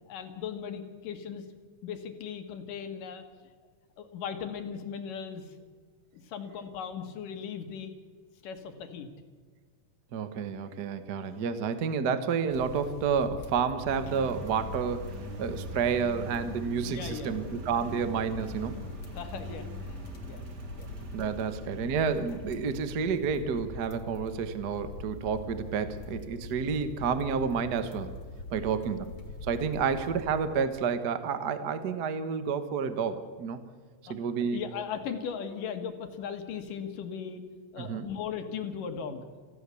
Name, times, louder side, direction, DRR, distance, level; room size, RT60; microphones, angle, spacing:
voice 1, 0.1-1.4 1.8-3.2 4.0-5.6 6.1-7.9 8.4-9.1 16.8-17.5 19.1-20.0 20.3-20.4 20.8-20.9 28.5-28.8 34.5-37.4 37.7-39.2, left 7 dB, 75° left, 6 dB, 3.2 m, -38 dB
voice 2, 10.1-18.8 21.1-28.1 28.5-29.1 29.4-33.6 34.1-34.6 37.8-38.0, right 6 dB, 70° right, 10 dB, 0.9 m, -30 dB
sound 1, 12.5-30.8, left 2 dB, 55° left, 2.8 m, -43 dB
Engine, 13.9-23.3, equal, 35° right, 2.0 m, -44 dB
26.5 x 15.5 x 7.0 m, 1.5 s
omnidirectional pair, 3.9 m